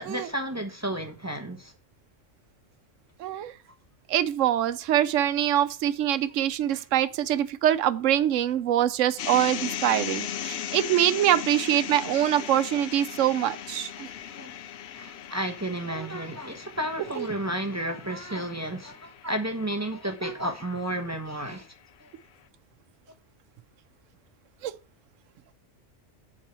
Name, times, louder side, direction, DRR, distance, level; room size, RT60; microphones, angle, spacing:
voice 1, 0.0-1.7 14.3-14.6 14.9-21.7 22.0-22.1, right 1 dB, 15° right, 0.9 m, -32 dB
voice 2, 3.2-3.5 4.1-14.1 17.2-17.3 24.6-24.7, right 11 dB, 90° right, 1.0 m, -24 dB
sound 1, 9.2-21.3, left 10 dB, 65° left, 0.8 m, -38 dB
7.2 x 4.8 x 6.7 m
omnidirectional pair, 1.3 m